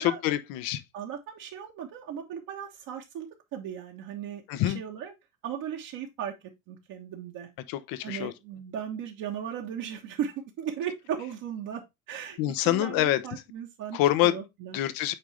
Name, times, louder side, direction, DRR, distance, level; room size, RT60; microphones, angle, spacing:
voice 1, 0.0-0.8 4.5-4.8 7.7-8.3 12.4-13.2 13.9-14.3 14.7-15.1, left 14 dB, 55° left, 0.9 m, -26 dB
voice 2, 0.9-5.1 5.4-6.3 6.7-7.5 8.0-11.8 12.1-14.8, right 9 dB, 50° right, 1.3 m, -37 dB
8.9 x 3.7 x 3.2 m
hypercardioid pair, 80°, 42 cm